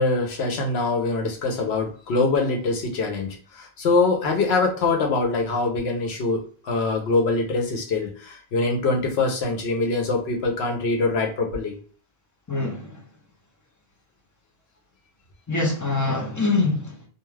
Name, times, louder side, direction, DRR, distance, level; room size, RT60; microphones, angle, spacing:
voice 1, 0.0-11.7, left 3 dB, 85° left, 1.0 m, -24 dB
voice 2, 12.5-13.0 15.5-17.0, left 3 dB, 25° left, 0.5 m, -24 dB
2.4 x 2.3 x 3.2 m
omnidirectional pair, 1.0 m